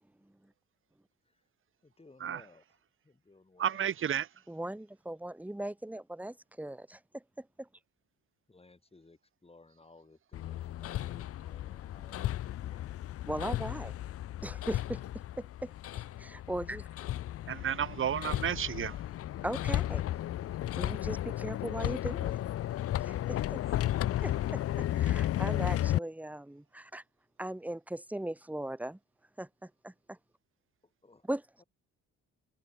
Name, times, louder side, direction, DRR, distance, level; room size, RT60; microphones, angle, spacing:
voice 1, 0.2-0.5 4.5-7.7 13.3-13.9 14.4-15.0 15.4-16.9 19.4-20.1 20.7-22.4 23.0-23.8 24.2-24.3 24.9-27.0 27.4-29.0 29.4-30.2 31.3-31.4, right 1 dB, 5° right, 1.3 m, -39 dB
voice 2, 1.8-3.9 8.5-13.0 30.8-31.3 31.6-31.7, left 3 dB, 20° left, 7.1 m, -59 dB
voice 3, 3.6-4.3 17.5-19.0, right 9 dB, 45° right, 0.9 m, -32 dB
Hammer, 10.3-26.0, left 13 dB, 50° left, 0.5 m, -34 dB
cardioid pair, 90°, 30 cm